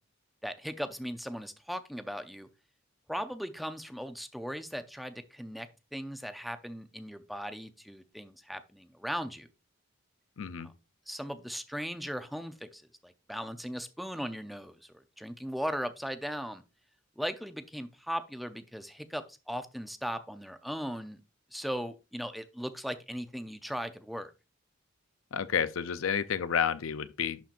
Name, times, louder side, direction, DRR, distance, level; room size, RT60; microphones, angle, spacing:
voice 1, 0.4-2.5 3.1-5.7 5.9-9.5 10.6-10.7 11.1-16.6 17.2-21.2 21.5-24.3, equal, ahead, 0.5 m, -38 dB
voice 2, 10.4-10.7 25.3-27.4, left 7 dB, 80° left, 0.5 m, -30 dB
11.5 x 4.4 x 2.5 m
head